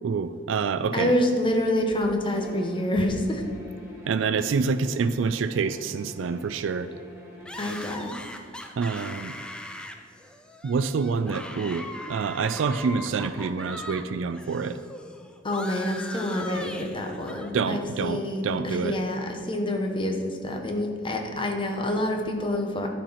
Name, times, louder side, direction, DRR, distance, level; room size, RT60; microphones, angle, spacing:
voice 1, 0.0-1.1 4.1-6.9 8.8-9.3 10.6-14.8 17.5-19.0, right 5 dB, 80° right, 11 dB, 0.4 m, -27 dB
voice 2, 0.9-3.4 7.6-8.1 15.4-22.9, left 1 dB, 25° left, 3 dB, 1.0 m, -27 dB
Bowed string instrument, 2.2-8.0, left 2 dB, 15° right, 2.1 m, -46 dB
sound 1, 7.5-14.0 14.3-17.5, left 1 dB, 5° left, 0.5 m, -40 dB
11.5 x 4.5 x 5.7 m, 2.4 s
head